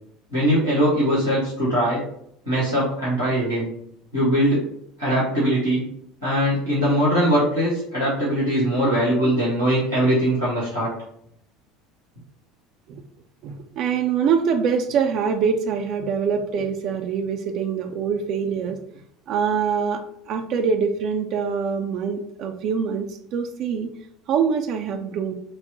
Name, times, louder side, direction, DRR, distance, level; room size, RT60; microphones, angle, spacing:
voice 1, 0.3-2.0 2.4-3.7 4.1-4.7 5.0-5.8 6.2-10.9, equal, 90° left, -8 dB, 1.6 m, -21 dB
voice 2, 13.4-18.8 19.3-23.9 24.3-25.3, right 6 dB, 50° right, 4 dB, 0.4 m, -24 dB
5.4 x 2.1 x 4.0 m, 0.69 s
figure-of-eight pair, 70°, 0 cm